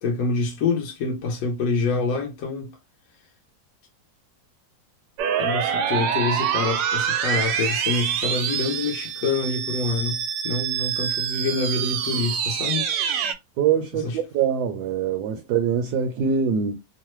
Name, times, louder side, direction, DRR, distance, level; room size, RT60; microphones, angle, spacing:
voice 1, 0.0-2.7 5.4-12.9 14.0-14.2, left 4 dB, 70° left, 0.8 m, -26 dB
sound 1, 5.2-13.3, right 8 dB, 90° right, 1.3 m, -26 dB
voice 2, 13.6-16.7, right 7 dB, 70° right, 1.0 m, -23 dB
3.0 x 2.0 x 3.0 m
omnidirectional pair, 2.0 m